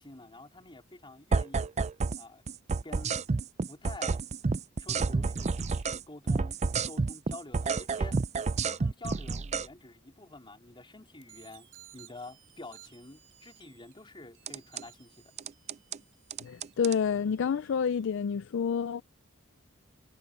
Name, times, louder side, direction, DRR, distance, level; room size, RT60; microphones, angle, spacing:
voice 1, 0.0-1.7 2.2-2.4 2.8-3.2 3.7-4.2 4.8-6.6 6.9-8.2 8.6-15.3, left 2 dB, 25° left, 3.6 m, -48 dB
sound 1, 1.3-2.2 2.5-6.0 6.3-9.7 14.5-14.8 15.4-16.0 16.3-17.0, right 4 dB, 30° right, 0.5 m, -30 dB
sound 2, 11.2-18.0, right 15 dB, 60° right, 3.5 m, -58 dB
voice 2, 16.4-19.0, left 6 dB, 60° left, 0.4 m, -29 dB
head